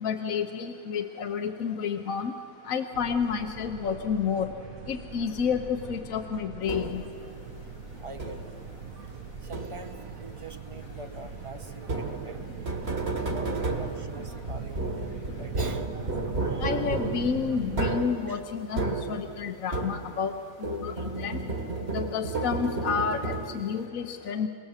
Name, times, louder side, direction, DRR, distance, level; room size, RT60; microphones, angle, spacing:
voice 1, 0.0-2.3 2.7-4.5 4.9-7.0 16.6-20.3 20.6-21.4 21.9-24.5, left 6 dB, 65° left, 6 dB, 1.2 m, -30 dB
sound 1, 2.9-18.0, right 5 dB, 70° right, 1.4 m, -41 dB
sound 2, 6.7-7.2 8.2-8.7 9.5-10.1 11.8-20.3 20.6-23.8, right 3 dB, 45° right, 1.8 m, -32 dB
voice 2, 8.0-12.5 13.3-15.9 16.4-16.8 18.3-18.4, right 3 dB, 25° right, 8 dB, 0.9 m, -45 dB
27.0 x 18.5 x 7.3 m, 2.4 s
omnidirectional pair, 1.6 m